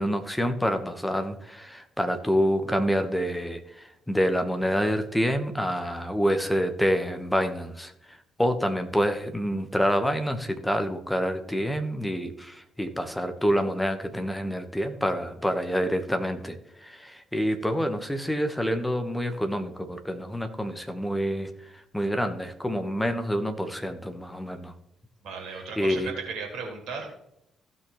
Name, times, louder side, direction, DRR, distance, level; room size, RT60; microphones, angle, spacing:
voice 1, 0.0-24.7 25.8-26.1, equal, 5° left, 7 dB, 1.3 m, -27 dB
voice 2, 25.2-27.2, right 4 dB, 60° right, 2 dB, 2.7 m, -36 dB
15.5 x 6.1 x 3.2 m, 0.81 s
figure-of-eight pair, 40°, 0 cm